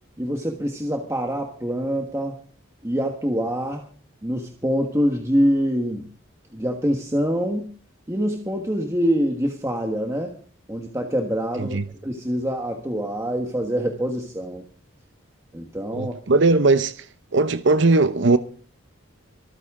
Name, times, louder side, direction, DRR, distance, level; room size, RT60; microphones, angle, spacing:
voice 1, 0.2-2.4 2.8-3.9 4.2-6.0 6.5-7.7 8.1-10.3 10.7-11.8 12.0-14.6 15.5-16.1, equal, 15° right, 1.4 m, -25 dB
voice 2, 15.9-17.1 17.3-18.4, right 3 dB, 60° right, 0.7 m, -19 dB
24.0 x 9.7 x 3.7 m
head